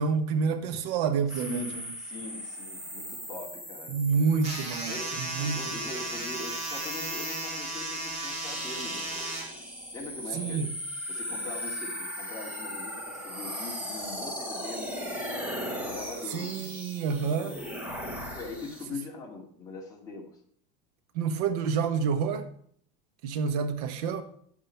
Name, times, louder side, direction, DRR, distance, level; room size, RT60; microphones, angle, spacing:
voice 1, 0.0-1.7 3.9-5.6 10.3-10.7 16.3-17.5 21.1-22.5 23.2-24.2, right 5 dB, 70° right, 1.1 m, -28 dB
voice 2, 1.3-4.0 4.9-9.3 9.9-10.7 11.1-16.8 17.2-17.9 18.4-20.3, left 3 dB, 15° left, 2.2 m, -42 dB
sound 1, 1.3-18.8, equal, 5° right, 1.5 m, -38 dB
sound 2, 4.4-9.4, right 1 dB, 30° right, 3.7 m, -35 dB
9.4 x 7.5 x 5.7 m
cardioid pair, 170°, 21 cm